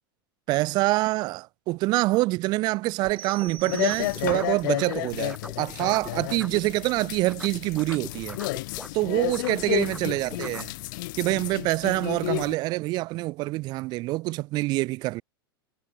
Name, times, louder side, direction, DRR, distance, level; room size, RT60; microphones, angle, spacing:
voice 1, 0.5-8.4 8.9-10.7 11.2-15.2, right 20 dB, 35° right, 0.4 m, -26 dB
sound 1, 3.0-6.7 7.0-10.7, right 1 dB, 5° right, 6.5 m, -42 dB
sound 2, 3.2-4.7, right 11 dB, 65° right, 4.4 m, -42 dB
sound 3, 3.7-12.5, left 20 dB, 50° left, 1.6 m, -32 dB
figure-of-eight pair, 90°, 13 cm